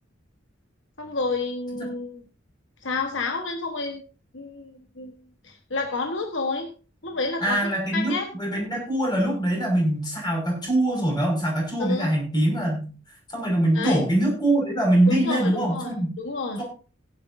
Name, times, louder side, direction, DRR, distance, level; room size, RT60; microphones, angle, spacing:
voice 1, 1.0-2.2 2.8-4.0 4.3-5.1 5.4-6.7 7.0-8.3 11.8-12.1 13.7-14.0 15.1-16.6, left 3 dB, 75° left, 4 dB, 1.3 m, -30 dB
voice 2, 7.4-12.9 13.3-16.1 16.6-16.7, right 1 dB, 25° left, 0 dB, 5.6 m, -23 dB
16.5 x 10.5 x 2.7 m, 0.36 s
head